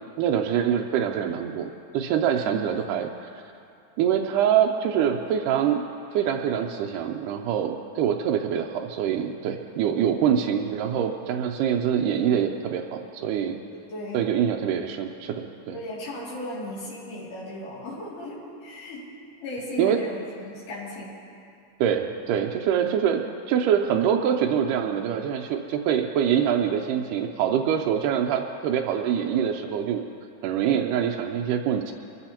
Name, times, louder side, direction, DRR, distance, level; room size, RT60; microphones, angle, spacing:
voice 1, 0.2-3.3 4.0-5.8 6.1-13.6 14.1-15.8 19.8-20.0 21.8-23.2 23.5-30.0 30.4-31.9, right 8 dB, 90° right, 2 dB, 2.2 m, -24 dB
voice 2, 9.8-10.2 13.7-14.3 15.7-19.1 19.4-21.2, left 1 dB, 80° left, -8 dB, 4.3 m, -36 dB
23.0 x 15.0 x 2.9 m, 2.5 s
omnidirectional pair, 3.7 m